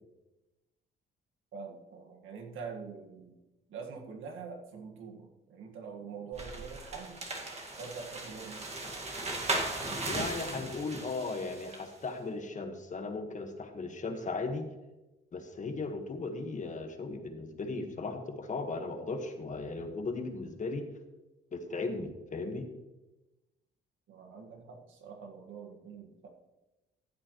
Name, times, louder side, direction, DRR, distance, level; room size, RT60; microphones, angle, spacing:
voice 1, 1.5-3.4 3.7-7.2 7.8-8.8 24.1-26.3, right 5 dB, 80° right, 2 dB, 1.8 m, -45 dB
sound 1, 6.3-11.9, right 2 dB, 35° right, 2.0 m, -37 dB
voice 2, 10.1-14.7 15.3-20.8 21.5-22.7, left 3 dB, 40° left, 5 dB, 1.6 m, -37 dB
14.5 x 7.8 x 3.1 m, 1.1 s
cardioid pair, 90°, 20 cm